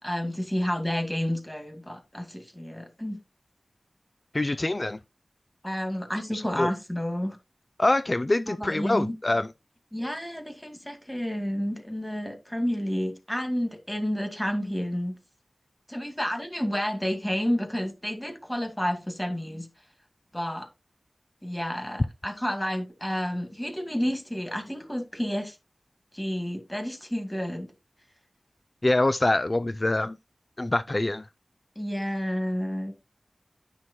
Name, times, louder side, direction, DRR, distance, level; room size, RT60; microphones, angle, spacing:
voice 1, 0.0-3.2 5.6-7.4 8.5-9.1 9.9-15.2 15.9-19.7 20.3-20.7 21.4-25.6 26.1-27.7 31.8-32.9, equal, 10° left, 2.0 m, -30 dB
voice 2, 4.3-5.0 6.3-6.7 7.8-9.5 28.8-30.2 30.6-31.3, left 2 dB, 40° left, 0.3 m, -25 dB
9.7 x 6.1 x 2.7 m
cardioid pair, 40°, 0 cm